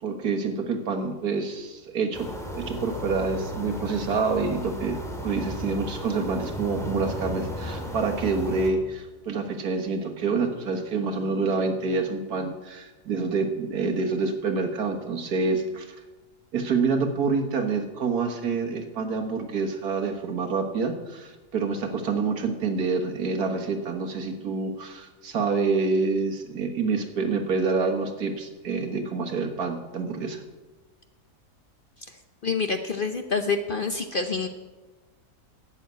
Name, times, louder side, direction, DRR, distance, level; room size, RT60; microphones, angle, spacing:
voice 1, 0.0-15.9 16.5-30.4, right 4 dB, 80° right, 4 dB, 1.9 m, -27 dB
sound 1, 2.1-8.7, left 1 dB, ahead, 2.0 m, -34 dB
voice 2, 32.0-34.5, left 4 dB, 45° left, 6 dB, 0.7 m, -28 dB
11.5 x 7.3 x 9.2 m, 1.2 s
omnidirectional pair, 1.6 m